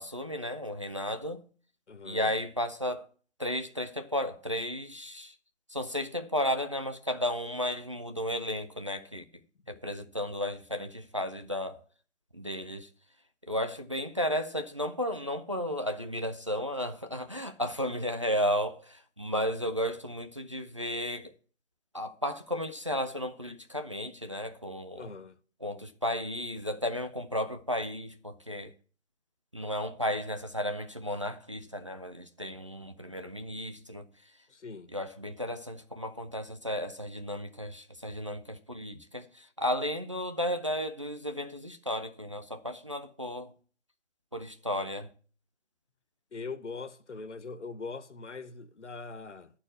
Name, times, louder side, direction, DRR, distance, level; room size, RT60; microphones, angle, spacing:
voice 1, 0.0-1.4 2.0-3.1 3.4-5.4 5.7-9.2 9.7-11.8 12.3-12.9 13.5-21.3 21.9-25.1 25.6-28.7 29.5-34.1 34.9-43.5 44.3-45.1, equal, 30° right, 0.4 m, -33 dB
voice 2, 1.9-2.3 25.0-25.4 34.5-34.9 46.3-49.5, left 4 dB, 75° left, 0.9 m, -41 dB
10.5 x 4.4 x 7.8 m
figure-of-eight pair, 150°, 36 cm